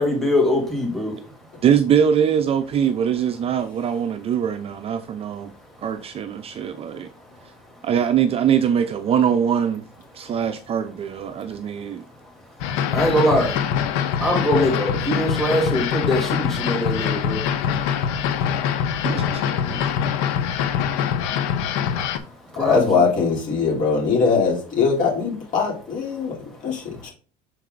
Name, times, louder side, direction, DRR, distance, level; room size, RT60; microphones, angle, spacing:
voice 1, 0.0-1.4 5.5-5.6 6.7-7.9 11.3-11.7 12.2-18.0 18.2-19.1 19.6-23.1 26.1-26.3 26.6-26.7, equal, ahead, 2.6 m, -26 dB
voice 2, 1.6-5.5 5.8-7.1 7.8-9.8 10.1-12.0 19.0-19.4, right 8 dB, 30° right, 0.5 m, -22 dB
sound 1, 12.6-22.2, left 8 dB, 80° left, 0.9 m, -24 dB
voice 3, 22.6-26.4 26.6-26.8, left 5 dB, 45° left, 3.2 m, -21 dB
6.5 x 4.3 x 3.9 m
cardioid pair, 135°, 18 cm